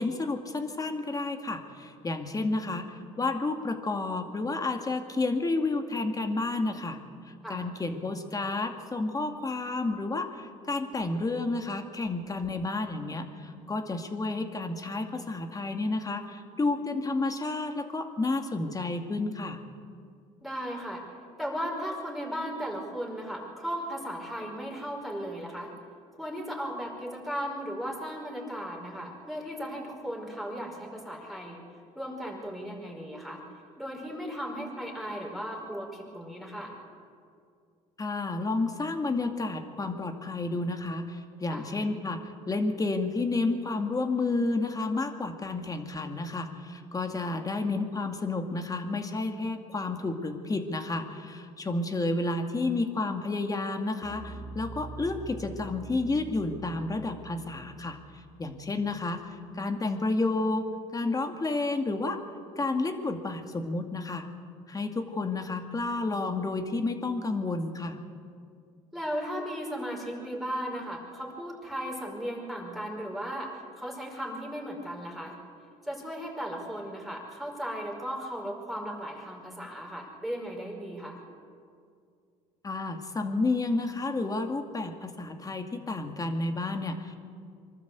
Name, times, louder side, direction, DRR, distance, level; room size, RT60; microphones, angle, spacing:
voice 1, 0.0-7.0 7.5-19.6 38.0-58.0 58.4-62.2 62.6-64.3 64.7-68.0 82.6-87.2, left 3 dB, 25° left, 6 dB, 2.1 m, -31 dB
voice 2, 20.4-21.0 21.4-25.7 26.2-31.6 32.0-33.4 33.8-36.7 41.5-41.7 68.9-75.4 75.8-81.2, equal, ahead, -1 dB, 5.4 m, -36 dB
sound 1, 54.0-59.3, right 4 dB, 45° right, 2.3 m, -45 dB
24.5 x 13.0 x 8.2 m, 2.3 s
supercardioid pair, 90°, 15 cm